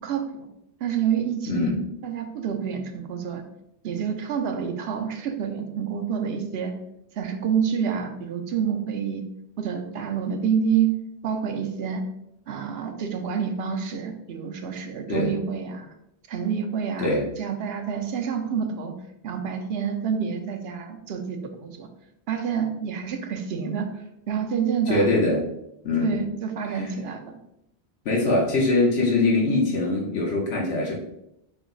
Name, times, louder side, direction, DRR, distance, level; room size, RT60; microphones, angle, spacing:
voice 1, 0.8-1.7 2.0-3.4 3.8-6.7 7.2-9.2 9.6-11.0 11.2-12.0 12.5-15.9 16.3-18.9 19.2-21.9 22.3-23.9 24.3-25.1 26.0-27.4, right 7 dB, 75° right, 6 dB, 0.8 m, -28 dB
voice 2, 1.5-1.8 15.1-15.3 17.0-17.2 24.9-25.4 25.8-26.2 26.7-26.8 28.0-30.9, left 2 dB, 85° left, -3 dB, 1.1 m, -22 dB
5.1 x 2.0 x 3.7 m, 0.81 s
omnidirectional pair, 1.1 m